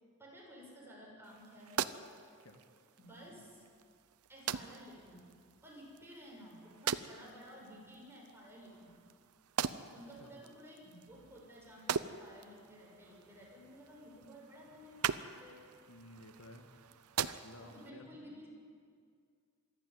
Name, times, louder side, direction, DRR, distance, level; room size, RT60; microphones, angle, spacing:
voice 1, 0.2-1.9 3.0-3.6 4.3-5.3 5.6-9.0 9.9-15.6 17.6-18.5, equal, 10° right, -3 dB, 6.5 m, -54 dB
sound 1, 1.2-17.9, right 7 dB, 85° right, 0.7 m, -42 dB
voice 2, 15.9-16.7 17.4-18.1, left 1 dB, 65° left, 4 dB, 1.8 m, -54 dB
26.0 x 12.0 x 9.5 m, 2.1 s
head